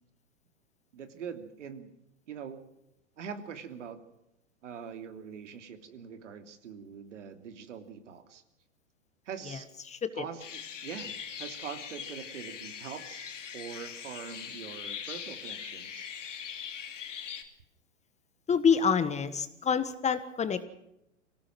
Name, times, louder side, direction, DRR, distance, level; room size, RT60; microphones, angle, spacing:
voice 1, 0.9-1.9 2.3-2.6 3.2-4.0 4.6-8.4 9.2-9.7 10.1-16.1, right 7 dB, 75° right, 7 dB, 3.0 m, -43 dB
voice 2, 9.8-10.2 18.5-20.6, left 6 dB, 20° left, 12 dB, 1.5 m, -27 dB
sound 1, 10.4-17.4, left 8 dB, 80° left, 3.1 m, -41 dB
25.0 x 18.0 x 6.2 m, 0.83 s
hypercardioid pair, 110°, 37 cm